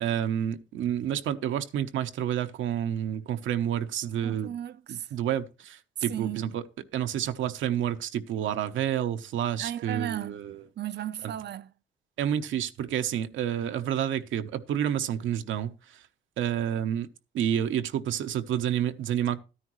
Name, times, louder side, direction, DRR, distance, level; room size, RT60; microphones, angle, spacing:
voice 1, 0.0-4.5 5.1-6.6 6.9-10.6 12.2-15.7 16.4-17.1 17.3-19.4, right 10 dB, 75° right, 1.0 m, -29 dB
voice 2, 4.2-5.1 6.1-6.6 9.6-10.5 10.8-11.7, right 11 dB, 60° right, 0.7 m, -35 dB
13.0 x 10.0 x 3.1 m
cardioid pair, 90°, 20 cm